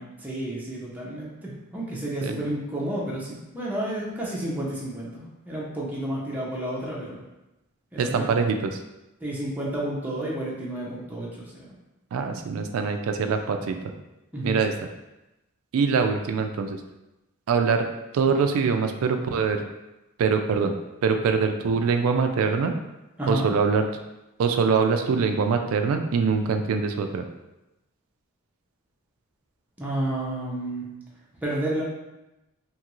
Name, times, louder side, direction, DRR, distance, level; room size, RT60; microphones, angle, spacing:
voice 1, 0.0-7.2 7.9-8.3 9.2-11.3 11.6-11.7 14.3-14.6 23.2-23.5 29.8-30.9 31.4-31.8, right 1 dB, 5° right, -6 dB, 0.5 m, -31 dB
voice 2, 8.0-8.8 12.1-13.8 14.4-14.7 15.7-16.8 17.5-17.8 18.1-19.6 20.2-20.7 21.0-22.7 23.3-23.9 24.4-27.2, right 5 dB, 70° right, 6 dB, 0.3 m, -23 dB
2.9 x 2.4 x 2.9 m, 0.96 s
head